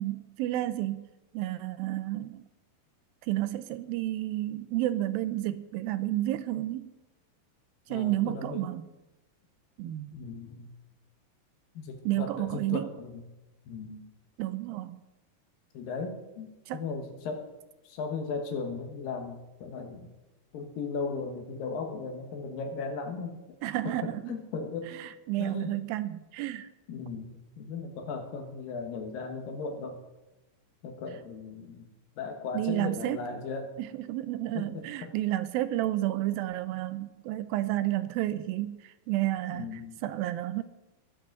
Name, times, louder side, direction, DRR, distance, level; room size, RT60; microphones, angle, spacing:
voice 1, 0.0-2.5 3.2-7.0 7.9-8.9 9.8-10.1 12.1-12.9 14.4-15.0 16.7-16.8 23.6-24.4 24.9-26.7 32.5-33.3 33.8-40.6, right 15 dB, 80° right, 2.3 m, -31 dB
voice 2, 7.9-8.7 10.1-10.7 11.7-13.2 13.7-14.0 15.7-17.5 17.8-20.1 20.5-23.4 23.8-25.0 25.4-25.8 26.9-30.0 30.8-31.9 32.2-33.7 34.5-35.1 39.5-40.0, left 4 dB, 70° left, 3.0 m, -37 dB
20.5 x 7.8 x 4.0 m
omnidirectional pair, 4.4 m